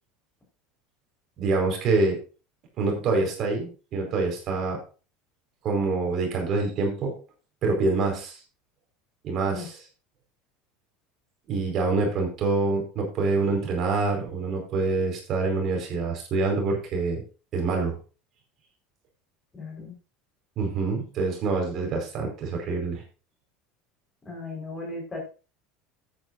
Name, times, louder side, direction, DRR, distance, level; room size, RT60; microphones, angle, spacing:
voice 1, 1.4-2.2 2.8-4.8 5.6-7.2 7.6-8.4 9.2-9.8 11.5-17.2 17.5-18.0 20.6-23.0, right 3 dB, 40° right, 2 dB, 4.9 m, -26 dB
voice 2, 19.5-19.9 24.2-25.3, left 3 dB, 15° left, 0 dB, 4.7 m, -36 dB
14.0 x 9.4 x 2.7 m, 0.34 s
supercardioid pair, 150°, 0 cm